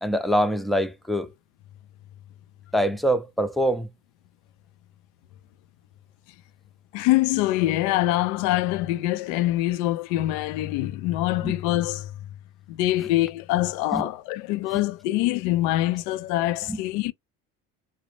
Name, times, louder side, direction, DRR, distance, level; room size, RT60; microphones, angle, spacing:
voice 1, 0.0-1.3 2.7-3.9 11.4-11.5 13.9-14.1 16.7-16.8, equal, ahead, 0.4 m, -24 dB
voice 2, 6.9-12.1 12.7-17.1, left 16 dB, 70° left, 0.5 m, -24 dB
3.9 x 2.0 x 3.1 m
supercardioid pair, 105°, 32 cm